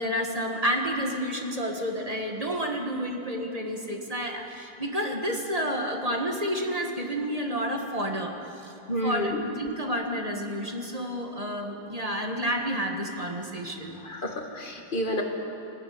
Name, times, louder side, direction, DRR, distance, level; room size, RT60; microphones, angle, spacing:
voice 1, 0.0-8.7 9.0-14.0, equal, 20° right, 2 dB, 1.6 m, -30 dB
voice 2, 8.9-9.4 14.0-15.2, equal, 25° left, 2 dB, 2.0 m, -29 dB
19.5 x 15.0 x 9.7 m, 2.8 s
omnidirectional pair, 2.2 m